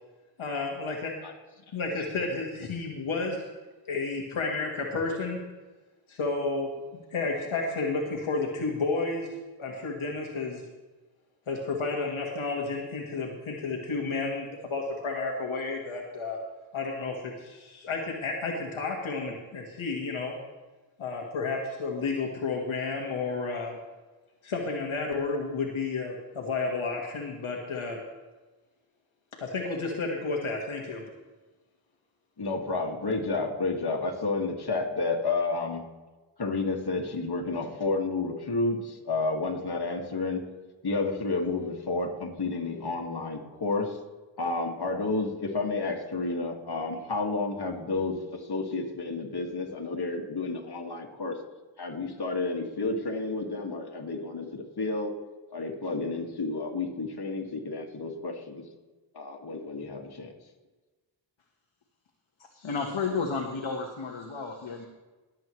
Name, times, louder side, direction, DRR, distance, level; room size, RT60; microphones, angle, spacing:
voice 1, 0.4-1.2 1.7-3.5 3.9-5.4 6.1-9.3 9.6-10.6 11.5-16.4 16.7-20.3 21.0-23.8 24.4-28.0 29.4-31.0, left 3 dB, 85° left, 0 dB, 1.6 m, -31 dB
voice 2, 32.4-35.8 36.4-40.5 40.8-44.0 44.4-51.4 51.8-55.1 55.5-58.6 59.1-60.3, left 3 dB, 55° left, 2 dB, 2.1 m, -31 dB
voice 3, 62.5-64.9, left 4 dB, 70° left, -1 dB, 1.5 m, -32 dB
21.5 x 7.8 x 3.2 m, 1.2 s
cardioid pair, 50°, 47 cm